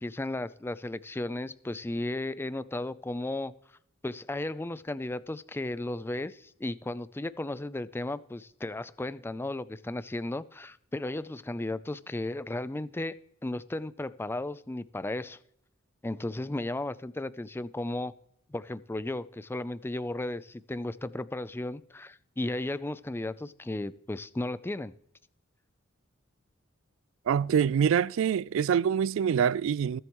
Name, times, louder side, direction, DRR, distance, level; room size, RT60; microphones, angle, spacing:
voice 1, 0.0-3.5 4.0-13.2 13.4-15.4 16.0-18.1 18.5-24.9, left 2 dB, 10° left, 0.4 m, -35 dB
voice 2, 27.3-30.0, right 8 dB, 65° right, 0.3 m, -25 dB
21.0 x 7.8 x 3.0 m
head